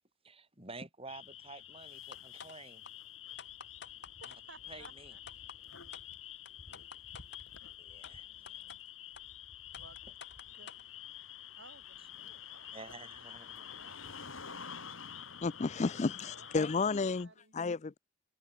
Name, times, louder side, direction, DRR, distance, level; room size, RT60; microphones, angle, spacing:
voice 1, 0.2-2.8 4.3-4.4 4.7-5.2 6.9-7.0 7.8-8.5 10.0-10.1 12.7-13.6, right 3 dB, 30° right, 7.1 m, -50 dB
sound 1, 1.1-17.2, left 9 dB, 70° left, 5.2 m, -48 dB
sound 2, 2.1-2.6 2.8-2.9 3.4-4.4 4.8-4.9 5.3-5.6 5.9-6.1 6.5-7.4 8.0-8.1 8.5-8.8 9.2-9.3 9.7-10.8, left 6 dB, 55° left, 2.1 m, -50 dB
voice 2, 4.2-5.2 7.9-8.8 9.8-10.0 10.5-10.7 11.6-13.1 13.4-14.0 14.5-14.8 16.3-16.9 17.1-17.5, right 3 dB, 60° right, 7.5 m, -59 dB
voice 3, 15.4-18.0, left 4 dB, 35° left, 0.4 m, -32 dB
head